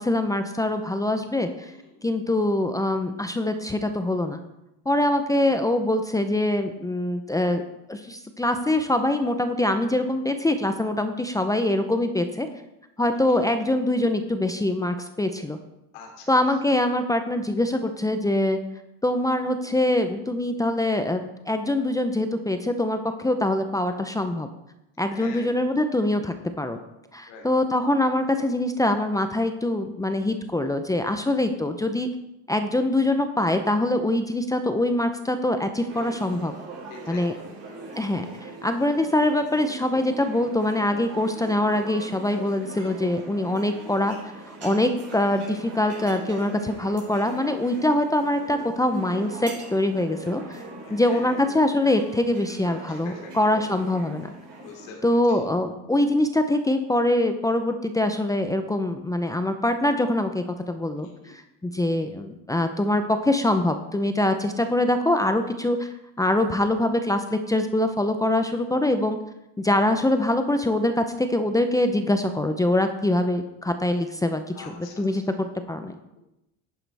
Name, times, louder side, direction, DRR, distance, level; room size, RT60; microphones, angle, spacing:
voice 1, 0.0-1.7 2.0-4.4 4.9-7.6 7.9-12.5 13.0-15.6 16.3-18.6 19.0-24.5 25.0-26.8 27.1-32.1 32.5-36.5 37.1-37.3 38.0-44.1 44.5-50.6 50.9-54.3 55.0-69.2 69.6-75.9, left 1 dB, 10° left, 7 dB, 0.7 m, -24 dB
voice 2, 1.6-2.0 13.1-13.4 15.9-16.3 25.1-25.5 27.3-27.5 36.9-37.5 43.4-43.6 50.9-51.5 52.9-53.4 54.6-55.0 55.3-55.4 61.0-61.3 74.5-75.2, left 5 dB, 85° left, 0 dB, 3.0 m, -45 dB
sound 1, 35.9-54.9, right 3 dB, 35° right, 4.2 m, -41 dB
11.0 x 9.4 x 3.5 m, 0.90 s
supercardioid pair, 105°, 40 cm